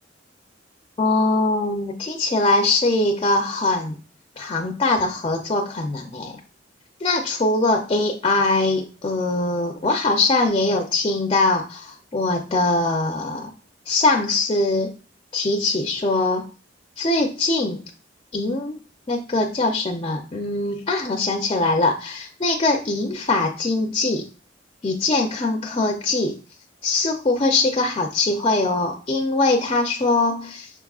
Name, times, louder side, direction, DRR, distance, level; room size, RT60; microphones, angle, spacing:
voice 1, 1.0-3.9 4.4-6.4 7.0-13.5 13.9-14.9 15.3-16.5 17.0-17.8 18.3-18.8 19.1-24.3 24.8-26.4 26.8-30.7, left 2 dB, 30° left, 3 dB, 0.4 m, -22 dB
5.9 x 3.5 x 2.3 m, 0.36 s
head